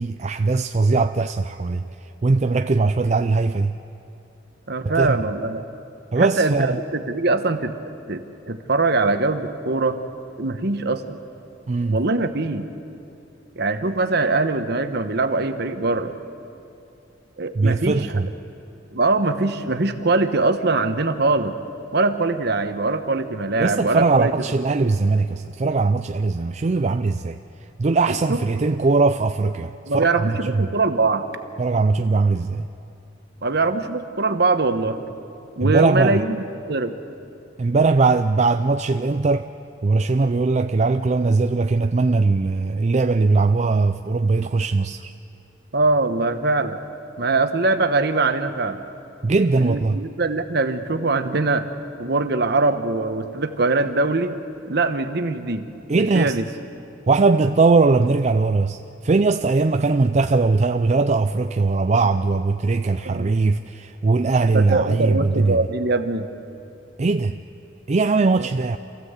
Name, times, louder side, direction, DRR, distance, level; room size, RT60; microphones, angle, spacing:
voice 1, 0.0-3.7 4.8-5.2 6.1-6.8 11.7-12.0 13.8-13.9 17.5-18.3 23.6-30.7 31.6-32.7 35.6-36.2 37.6-39.5 39.8-45.1 49.2-50.0 55.9-56.4 57.1-65.6 67.0-67.4 67.9-68.8, right 3 dB, 35° right, 0.4 m, -20 dB
voice 2, 4.7-5.6 6.2-7.7 8.1-10.0 10.4-11.2 11.9-12.6 13.6-16.1 17.4-18.0 18.9-21.6 21.9-24.3 28.1-28.2 29.9-31.3 33.4-35.0 35.6-36.9 45.7-46.8 47.2-48.8 49.6-51.7 52.0-54.4 54.7-55.7 55.9-56.4 63.0-63.3 64.5-66.3 68.4-68.5, right 3 dB, 60° right, 1.1 m, -22 dB
27.0 x 15.5 x 8.1 m
head